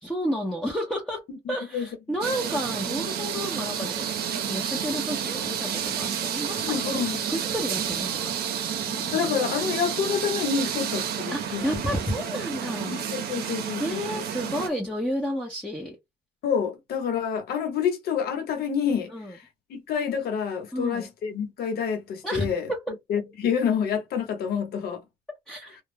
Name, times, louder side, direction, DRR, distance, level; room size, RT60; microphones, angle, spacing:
voice 1, 0.0-7.0 7.3-9.1 11.3-13.0 13.8-16.0 19.1-19.4 20.7-21.1 22.2-22.8 25.5-25.8, equal, 5° left, 0.7 m, -31 dB
voice 2, 1.5-1.9 6.6-7.2 9.1-11.8 12.9-14.2 16.4-19.4 19.7-22.7 23.1-25.0, left 7 dB, 65° left, 0.9 m, -28 dB
sound 1, 2.2-14.7, right 8 dB, 70° right, 0.7 m, -30 dB
2.2 x 2.0 x 3.2 m
cardioid pair, 110°, 17 cm